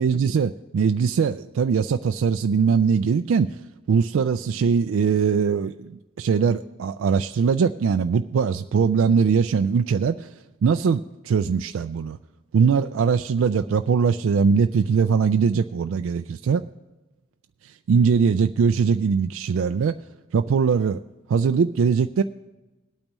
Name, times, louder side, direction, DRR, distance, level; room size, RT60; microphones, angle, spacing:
voice 1, 0.0-3.6 3.9-5.7 6.2-10.3 10.6-12.2 12.5-16.6 17.9-19.9 20.3-21.0 21.3-22.2, right 6 dB, 70° right, 9 dB, 0.3 m, -21 dB
19.5 x 8.8 x 3.0 m, 1.1 s
head